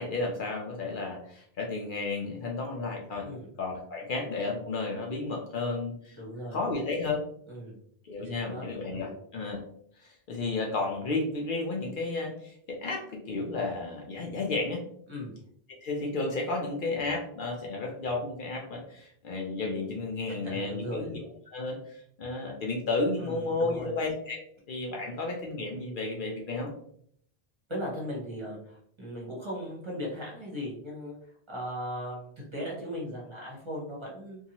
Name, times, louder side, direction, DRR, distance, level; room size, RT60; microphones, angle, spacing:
voice 1, 0.0-3.3 3.6-6.2 6.5-7.2 8.0-9.6 10.0-14.8 15.8-21.2 21.5-24.4 24.7-26.7, left 3 dB, 60° left, -1 dB, 0.7 m, -32 dB
voice 2, 6.2-6.6 7.5-7.8 8.2-8.6 8.9-9.2 15.1-15.3 20.3-21.1 23.2-23.9 27.7-31.2 31.5-34.4, equal, 30° right, -4 dB, 0.9 m, -38 dB
2.7 x 2.3 x 2.8 m, 0.65 s
omnidirectional pair, 1.0 m